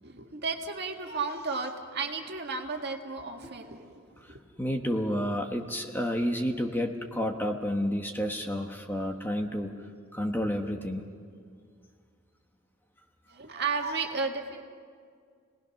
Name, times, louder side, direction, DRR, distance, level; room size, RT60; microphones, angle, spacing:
voice 1, 0.0-4.0 4.3-4.4 13.3-14.6, right 4 dB, 50° right, 2 dB, 2.0 m, -33 dB
voice 2, 4.3-9.7 10.1-11.0, equal, 10° left, 3 dB, 1.2 m, -30 dB
30.0 x 19.5 x 5.9 m, 2.1 s
head